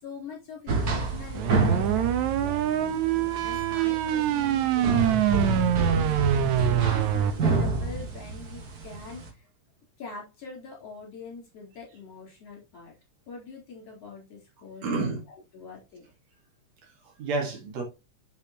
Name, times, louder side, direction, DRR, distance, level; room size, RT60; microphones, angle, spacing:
voice 1, 0.0-9.5 10.0-12.9 13.3-15.1 15.5-16.1, left 4 dB, 55° left, 4.8 m, -43 dB
sound 1, 0.7-9.3, right 3 dB, 40° right, 1.4 m, -28 dB
sound 2, 1.3-7.3, right 11 dB, 80° right, 2.2 m, -25 dB
voice 2, 3.3-3.6 14.8-15.2 16.8-17.8, right 3 dB, 65° right, 3.2 m, -31 dB
7.6 x 7.4 x 3.0 m
omnidirectional pair, 3.3 m